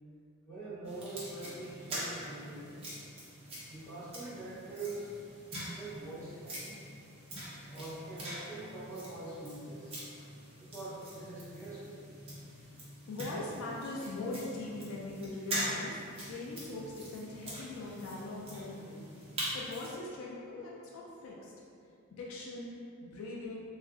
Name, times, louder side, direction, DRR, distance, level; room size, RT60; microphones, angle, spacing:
voice 1, 0.5-2.9 3.7-5.1 5.6-6.8 7.7-9.9 10.6-12.0, right 2 dB, 10° left, -12 dB, 0.8 m, -44 dB
Shopping cart - grab handle, 0.8-20.0, equal, 25° right, 0.5 m, -43 dB
voice 2, 13.1-19.1 19.5-21.5 22.1-23.6, left 2 dB, 65° left, -3 dB, 0.3 m, -41 dB
2.4 x 2.0 x 3.6 m, 2.5 s
head